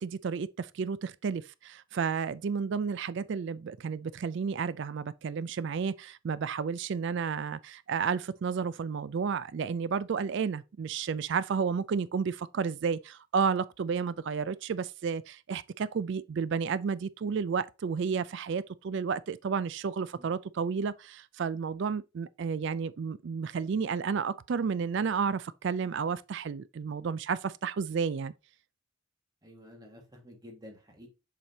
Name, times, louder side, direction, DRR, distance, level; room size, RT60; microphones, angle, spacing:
voice 1, 0.0-28.3, right 6 dB, 55° right, 0.3 m, -32 dB
voice 2, 29.4-31.1, left 1 dB, 20° right, 1.7 m, -51 dB
7.1 x 5.0 x 2.7 m
head